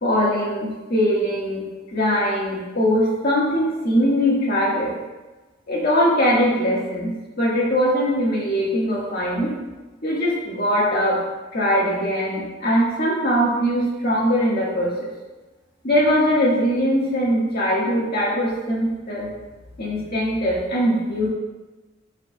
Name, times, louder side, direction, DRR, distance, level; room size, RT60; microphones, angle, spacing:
voice 1, 0.0-1.7 1.9-4.9 5.7-9.5 10.0-11.2 11.5-15.1 15.8-19.3 19.8-21.3, equal, 55° left, -5 dB, 1.8 m, -21 dB
13.5 x 4.8 x 2.4 m, 1.2 s
head